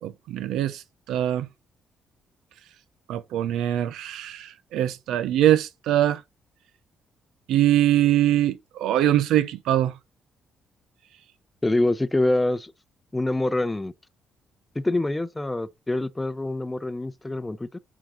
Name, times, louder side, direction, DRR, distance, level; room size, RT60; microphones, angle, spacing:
voice 1, 0.0-0.8 1.1-1.5 3.1-6.2 7.5-9.9, right 12 dB, 85° right, 0.7 m, -23 dB
voice 2, 11.6-12.7 13.1-13.9 14.8-17.8, left 2 dB, 15° left, 0.6 m, -25 dB
8.8 x 3.9 x 3.8 m
cardioid pair, 90°, 0 cm